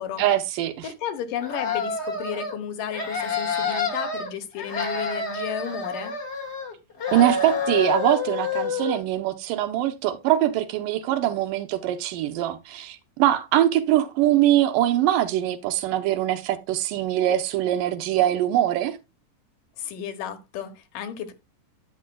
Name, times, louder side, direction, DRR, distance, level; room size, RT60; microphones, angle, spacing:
voice 1, 0.2-0.9 7.1-19.0, right 12 dB, 85° right, 2.5 m, -23 dB
voice 2, 0.8-6.1 19.8-21.3, left 8 dB, 85° left, 2.7 m, -33 dB
sound 1, 1.4-2.5 2.9-4.3 4.6-6.7 7.0-9.0, left 4 dB, 25° left, 1.6 m, -28 dB
11.0 x 8.6 x 2.3 m
omnidirectional pair, 3.7 m